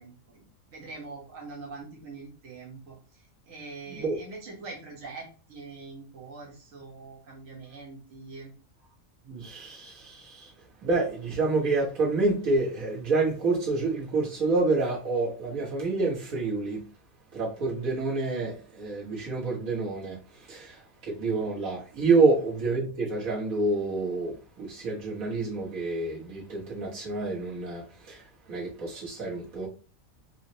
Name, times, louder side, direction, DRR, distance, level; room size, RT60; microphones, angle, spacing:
voice 1, 0.0-8.5, right 3 dB, 70° right, 1.5 m, -44 dB
voice 2, 9.3-10.5 10.8-16.8 17.3-29.7, right 3 dB, 85° right, 1.7 m, -28 dB
4.8 x 2.0 x 2.7 m
omnidirectional pair, 1.4 m